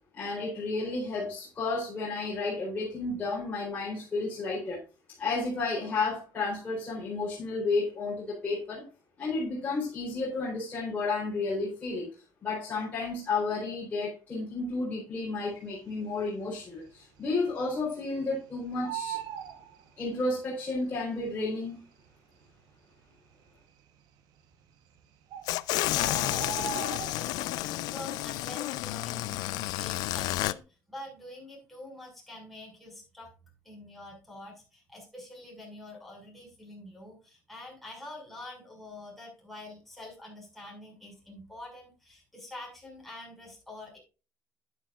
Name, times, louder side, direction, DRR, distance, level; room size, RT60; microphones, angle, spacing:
voice 1, 0.1-4.8 5.2-8.9 9.2-12.1 12.4-19.2 20.0-21.8, left 3 dB, 25° left, -5 dB, 4.1 m, -32 dB
Bird, 15.9-16.5 16.8-16.9 17.2-18.4 18.6-20.5 21.3-21.4 22.1-22.2 22.3-22.5 23.1-23.6 24.5-24.6 25.0-25.1 25.3-27.6 27.9-28.3 28.6-29.9 30.3-30.5, right 9 dB, 75° right, 1.1 m, -39 dB
sound 1, 25.5-30.5, left 17 dB, 85° left, 0.5 m, -31 dB
voice 2, 27.1-30.6 30.9-33.3 33.6-44.0, left 1 dB, ahead, -2 dB, 6.0 m, -46 dB
11.0 x 9.7 x 2.5 m, 0.32 s
cardioid pair, 140°, 7 cm